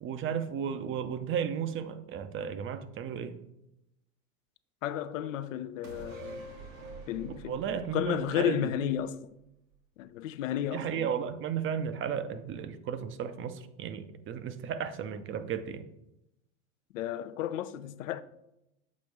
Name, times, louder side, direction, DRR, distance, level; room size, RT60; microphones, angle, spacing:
voice 1, 0.0-3.4 7.5-8.7 10.6-15.8, right 8 dB, 30° right, 0.6 m, -34 dB
voice 2, 4.8-6.4 7.1-7.6 7.9-9.2 10.0-11.1 16.9-18.2, left 10 dB, 70° left, 0.6 m, -32 dB
sound 1, 5.8-9.4 9.7-9.8, right 2 dB, 80° right, 1.4 m, -47 dB
7.4 x 4.1 x 4.6 m
hypercardioid pair, 90°, 40 cm